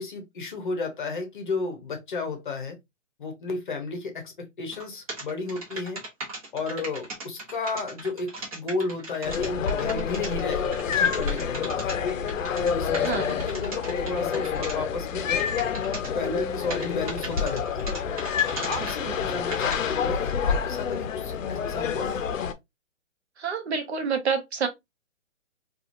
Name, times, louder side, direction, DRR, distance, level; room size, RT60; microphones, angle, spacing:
voice 1, 0.0-2.8 3.2-6.0 6.5-12.0 12.8-15.3 16.0-17.9 18.6-22.2, left 3 dB, 40° left, 0.7 m, -33 dB
sound 1, 4.7-4.8 5.1-14.7 15.3-16.1 16.7-19.0 19.5-19.7, right 2 dB, 30° right, 0.9 m, -37 dB
sound 2, 9.2-22.5, left 7 dB, 85° left, 0.6 m, -28 dB
voice 2, 13.0-13.4 18.8-18.9 23.4-24.7, right 6 dB, 55° right, 0.8 m, -28 dB
2.8 x 2.4 x 2.5 m
hypercardioid pair, 165°, 38 cm